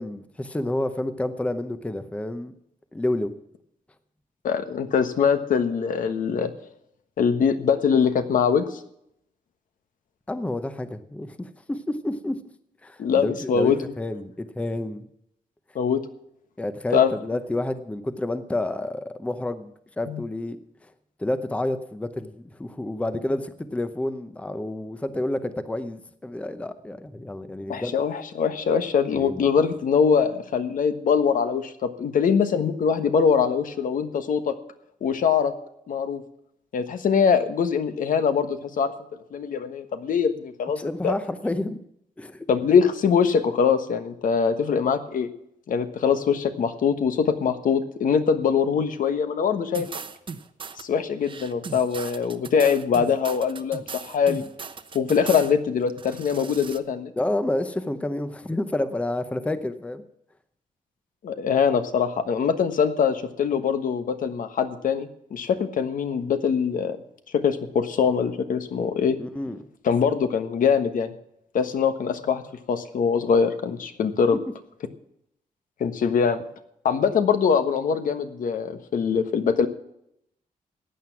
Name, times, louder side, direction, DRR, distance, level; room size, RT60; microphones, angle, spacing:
voice 1, 0.0-2.5 2.9-3.3 10.3-12.4 12.8-15.1 16.6-20.6 20.8-20.9 21.2-28.0 29.1-29.4 40.8-41.8 42.2-42.5 57.2-60.0 69.2-69.7, left 1 dB, 10° left, 11 dB, 0.7 m, -29 dB
voice 2, 4.4-6.5 7.2-8.8 13.0-13.8 15.7-16.0 16.9-17.1 20.1-20.2 27.7-34.5 35.0-35.5 35.9-36.2 36.7-38.9 39.3-41.2 42.5-45.3 45.7-49.9 50.8-54.4 54.9-57.1 61.2-67.0 67.3-69.2 69.8-71.1 71.5-72.4 72.7-74.4 75.8-76.4 76.8-79.7, left 6 dB, 70° left, 9 dB, 1.3 m, -23 dB
sound 1, 49.7-50.8 51.2-55.5 55.9-56.8, right 5 dB, 35° right, 0.9 m, -38 dB
15.5 x 9.3 x 5.9 m, 0.75 s
wide cardioid pair, 155°, 14 cm